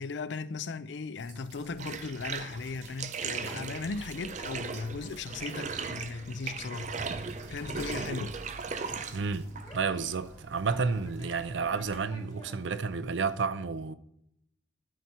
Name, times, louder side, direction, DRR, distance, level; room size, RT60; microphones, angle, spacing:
voice 1, 0.0-7.0 7.5-8.4, left 4 dB, 75° left, 0.5 m, -37 dB
sound 1, 1.2-12.0, right 1 dB, 65° right, 1.9 m, -51 dB
Bathtub (filling or washing), 1.7-13.4, right 5 dB, 40° right, 0.6 m, -39 dB
Conversation, 5.0-13.4, left 1 dB, 25° left, 1.7 m, -54 dB
voice 2, 9.1-13.9, right 5 dB, 90° right, 0.6 m, -31 dB
12.5 x 4.5 x 4.3 m
head